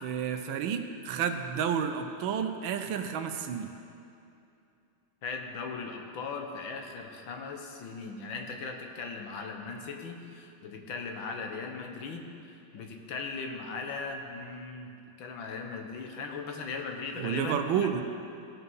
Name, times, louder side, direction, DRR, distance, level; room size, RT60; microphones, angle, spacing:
voice 1, 0.0-3.7 17.2-18.0, right 8 dB, 85° right, 6 dB, 1.5 m, -30 dB
voice 2, 5.2-14.9 15.2-18.0, left 4 dB, 80° left, 3 dB, 1.8 m, -38 dB
17.0 x 5.9 x 5.4 m, 2.7 s
omnidirectional pair, 2.1 m